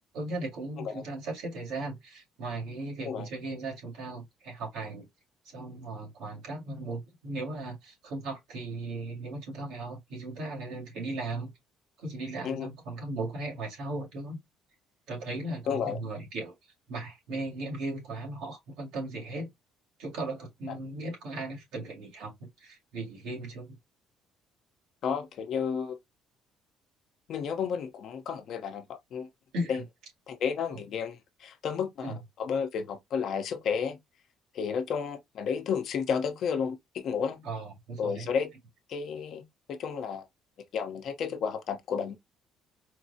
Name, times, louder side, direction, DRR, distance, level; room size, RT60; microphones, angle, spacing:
voice 1, 0.1-5.1 5.4-11.5 12.0-14.4 15.1-16.5 16.9-19.5 20.0-23.8 29.5-29.8 30.7-30.8 32.0-32.2 37.4-38.3, right 2 dB, 85° right, 2.0 m, -37 dB
voice 2, 15.7-16.0 20.7-20.8 25.0-26.0 27.3-29.3 29.7-29.8 30.3-34.0 34.5-37.4 38.0-38.5 38.9-39.4 39.7-40.3 40.7-42.2, left 6 dB, 60° left, 0.8 m, -32 dB
4.4 x 2.0 x 2.7 m
cardioid pair, 130°, 0 cm